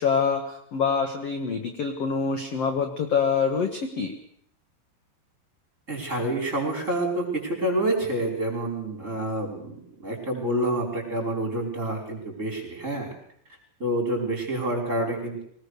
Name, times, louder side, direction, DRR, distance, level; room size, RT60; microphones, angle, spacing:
voice 1, 0.0-4.2, left 6 dB, 55° left, 5 dB, 1.8 m, -25 dB
voice 2, 5.9-13.1 13.8-15.4, right 1 dB, 15° right, 1 dB, 5.4 m, -28 dB
23.0 x 19.5 x 6.7 m, 0.67 s
omnidirectional pair, 5.0 m